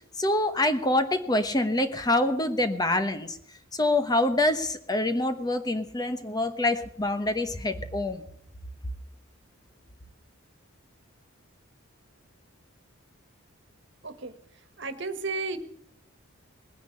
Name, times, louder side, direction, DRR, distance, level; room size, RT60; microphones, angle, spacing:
voice 1, 0.2-3.4 3.7-8.2, left 1 dB, 20° left, 9 dB, 1.0 m, -26 dB
voice 2, 14.0-15.6, right 4 dB, 60° right, 11 dB, 1.6 m, -34 dB
19.5 x 10.0 x 6.6 m, 0.69 s
head